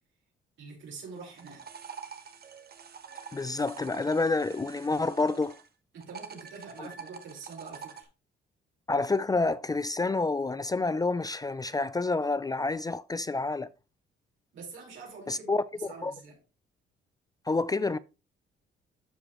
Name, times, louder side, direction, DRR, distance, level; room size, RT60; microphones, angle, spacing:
voice 1, 0.6-1.7 5.9-8.1 14.5-16.4, right 4 dB, 75° right, 4.7 m, -45 dB
sound 1, 1.1-5.7 6.0-8.0, right 7 dB, 50° right, 1.3 m, -46 dB
voice 2, 3.3-5.6 6.8-6.9 8.9-13.7 15.3-15.6 16.0-16.1 17.5-18.0, left 3 dB, 20° left, 0.4 m, -28 dB
12.5 x 4.9 x 3.1 m
cardioid pair, 90°, 20 cm